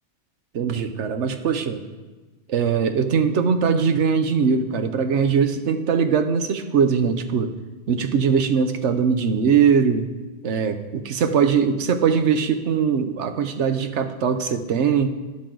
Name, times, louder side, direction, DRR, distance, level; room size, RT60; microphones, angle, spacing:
voice 1, 0.5-1.8 2.5-7.5 7.9-10.1 10.4-15.1, right 6 dB, 70° right, 8 dB, 1.1 m, -21 dB
12.5 x 11.0 x 3.9 m, 1.2 s
omnidirectional pair, 1.3 m